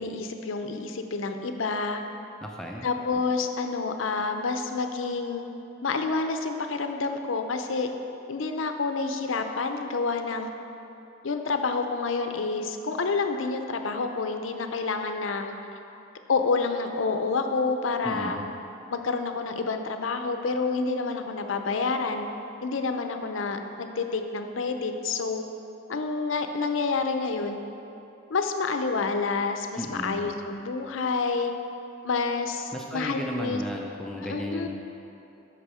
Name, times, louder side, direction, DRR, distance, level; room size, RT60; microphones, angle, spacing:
voice 1, 0.0-2.0 2.8-5.5 5.8-7.9 8.3-10.5 11.2-15.5 16.3-18.4 18.9-22.3 22.6-25.4 25.9-27.6 28.3-31.5 32.0-33.6 34.2-34.7, left 4 dB, 75° left, 6 dB, 0.6 m, -28 dB
voice 2, 2.4-2.9 18.0-18.4 29.8-30.2 32.7-34.7, equal, 5° left, -1 dB, 0.5 m, -34 dB
8.2 x 6.0 x 4.9 m, 2.9 s
head